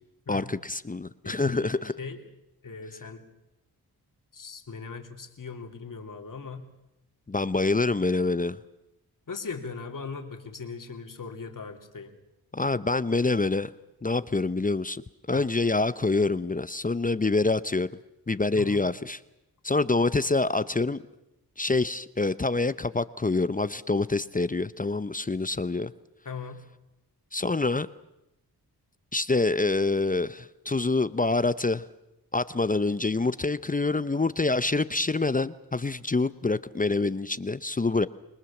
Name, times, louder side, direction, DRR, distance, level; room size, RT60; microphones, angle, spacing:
voice 1, 0.3-1.9 7.3-8.6 12.5-13.7 14.0-17.9 18.3-19.2 19.6-21.0 21.6-25.9 27.3-27.9 29.1-31.8 32.3-38.1, left 3 dB, 20° left, 0.8 m, -26 dB
voice 2, 1.2-2.2 2.6-3.2 4.3-6.7 9.3-12.2 15.3-15.4 18.5-18.8 26.2-26.6, left 5 dB, 55° left, 3.0 m, -39 dB
26.5 x 20.5 x 7.3 m
cardioid pair, 60°, 38 cm